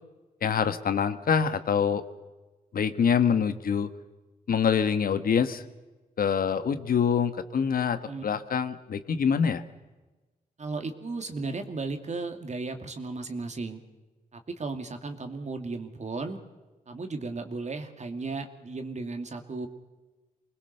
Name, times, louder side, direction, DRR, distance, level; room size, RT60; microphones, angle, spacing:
voice 1, 0.4-2.0 2.7-3.9 4.5-5.6 6.2-9.6, left 7 dB, 75° left, 11 dB, 1.4 m, -25 dB
voice 2, 10.6-13.8 14.3-16.4 16.9-19.7, right 3 dB, 50° right, 6 dB, 2.3 m, -35 dB
25.0 x 20.5 x 6.7 m, 1.2 s
cardioid pair, 70°, 15 cm